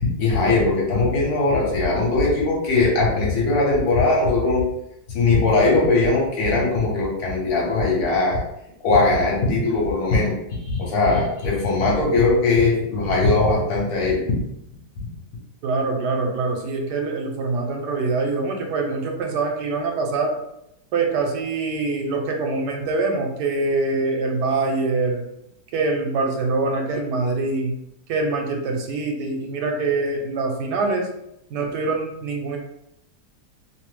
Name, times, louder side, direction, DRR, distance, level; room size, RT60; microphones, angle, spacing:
voice 1, 0.0-4.6 5.1-8.4 8.8-14.2 15.0-15.1, left 3 dB, 65° left, -3 dB, 1.2 m, -20 dB
voice 2, 15.6-20.3 20.9-25.2 25.7-27.7 28.1-31.1 31.5-32.6, right 3 dB, 80° right, 2 dB, 1.2 m, -24 dB
2.9 x 2.0 x 3.1 m, 0.82 s
omnidirectional pair, 1.8 m